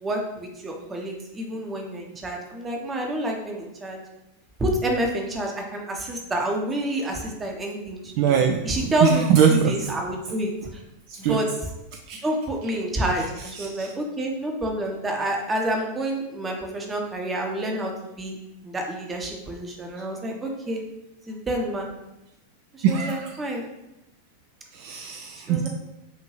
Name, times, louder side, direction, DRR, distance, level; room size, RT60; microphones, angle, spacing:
voice 1, 0.0-4.0 4.6-8.3 8.6-9.2 9.5-10.8 11.2-11.5 12.2-17.9 18.2-20.8 21.3-21.9 22.7-23.7 25.5-25.7, right 1 dB, 15° right, 1 dB, 0.8 m, -28 dB
voice 2, 8.2-9.9 11.1-11.4 12.1-12.2 12.6-12.7 13.1-13.9 22.8-23.5 24.7-25.7, right 7 dB, 45° right, 4 dB, 0.3 m, -23 dB
5.7 x 2.7 x 3.1 m, 0.92 s
figure-of-eight pair, 90°, 0 cm